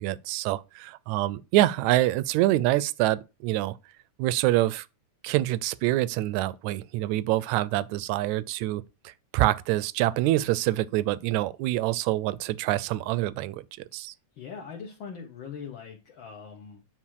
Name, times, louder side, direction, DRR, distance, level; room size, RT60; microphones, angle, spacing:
voice 1, 0.0-3.8 4.2-4.9 5.2-14.1, right 16 dB, 80° right, 1.8 m, -26 dB
voice 2, 14.3-16.8, left 6 dB, 55° left, 1.5 m, -41 dB
9.9 x 4.1 x 4.7 m
omnidirectional pair, 3.4 m